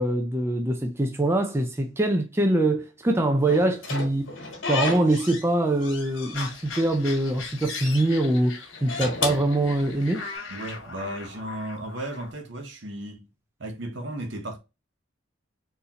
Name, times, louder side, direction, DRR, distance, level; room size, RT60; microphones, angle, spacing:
voice 1, 0.0-4.3 4.7-10.2, right 1 dB, 15° right, 0.4 m, -24 dB
Slam / Squeak, 3.5-5.5 5.8-6.8 7.2-8.1 8.7-10.3, left 3 dB, 70° left, 1.5 m, -32 dB
sound 1, 6.3-12.3, left 4 dB, 90° left, 1.2 m, -40 dB
voice 2, 10.5-13.3 13.6-14.6, right 1 dB, 65° right, 0.9 m, -35 dB
3.9 x 2.7 x 2.8 m
head